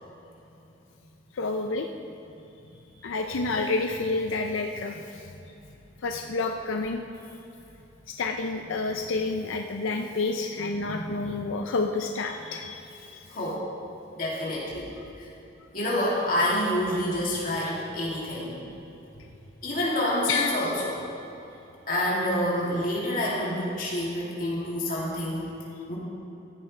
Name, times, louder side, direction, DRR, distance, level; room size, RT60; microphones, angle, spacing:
voice 1, 1.3-1.9 3.0-5.2 6.0-7.0 8.1-13.3 20.3-20.5, left 3 dB, 90° left, 3 dB, 0.5 m, -29 dB
voice 2, 13.3-13.7 14.1-14.9 15.2-15.3 15.7-18.6 19.6-21.0 21.9-25.5 25.9-26.0, left 1 dB, 45° left, -6 dB, 2.6 m, -28 dB
15.0 x 9.5 x 3.3 m, 2.9 s
head